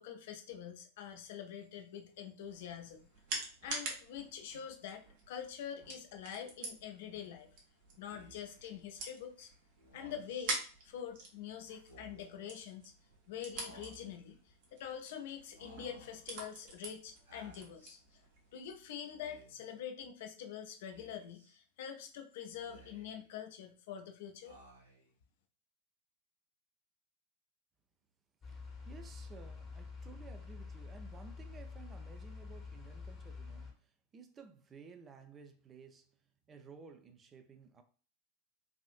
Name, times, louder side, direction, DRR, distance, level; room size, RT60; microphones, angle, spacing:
voice 1, 0.0-3.1 3.6-7.5 8.0-9.5 9.9-10.6 10.8-12.9 13.3-18.0 18.5-24.5, left 9 dB, 55° left, 0.5 m, -45 dB
sound 1, 2.5-18.9, right 3 dB, 50° right, 0.8 m, -47 dB
Speech, 8.1-8.6 9.8-10.5 11.7-12.4 13.6-14.3 15.5-16.2 17.3-18.0 19.0-19.7 20.9-21.5 22.5-23.3 24.4-25.1, right 2 dB, 85° right, 1.1 m, -58 dB
sound 2, 28.4-33.7, left 4 dB, 25° left, 0.8 m, -47 dB
voice 2, 28.5-37.8, right 5 dB, 20° right, 0.4 m, -55 dB
3.4 x 2.5 x 2.4 m
figure-of-eight pair, 90°, 0 cm